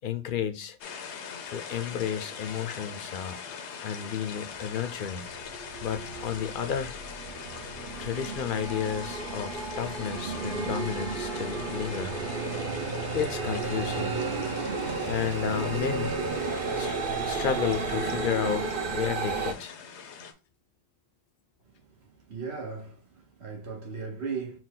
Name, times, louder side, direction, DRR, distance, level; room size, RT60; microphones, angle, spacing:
voice 1, 0.0-0.8 1.5-3.4 3.8-5.3 5.8-6.9 8.0-12.1 13.1-14.2 15.0-16.1 16.7-16.9 17.2-19.8, left 8 dB, 60° left, 0.6 m, -32 dB
sound 1, 0.8-20.3, left 6 dB, 90° left, 1.0 m, -42 dB
sound 2, 4.6-4.7 5.1-19.5, right 4 dB, 60° right, 0.8 m, -33 dB
voice 2, 22.0-24.6, right 5 dB, 75° right, 1.5 m, -37 dB
6.1 x 2.3 x 3.8 m
omnidirectional pair, 1.1 m